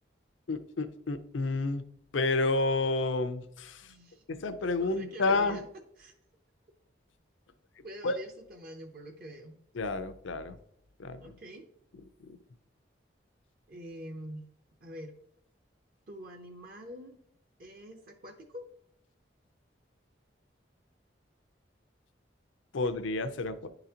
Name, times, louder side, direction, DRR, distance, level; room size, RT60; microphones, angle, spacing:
voice 1, 0.5-1.8 2.1-3.9 4.3-5.6 8.0-8.1 9.8-10.6 11.0-11.3 12.3-12.4 22.7-23.7, left 3 dB, 90° left, 10 dB, 0.6 m, -30 dB
voice 2, 3.8-4.2 4.8-5.6 6.0-6.1 7.8-9.6 11.2-11.7 13.7-14.5 14.8-15.1 16.1-17.2 17.6-18.7, equal, 50° right, 4 dB, 0.7 m, -45 dB
10.0 x 3.9 x 2.8 m, 0.73 s
head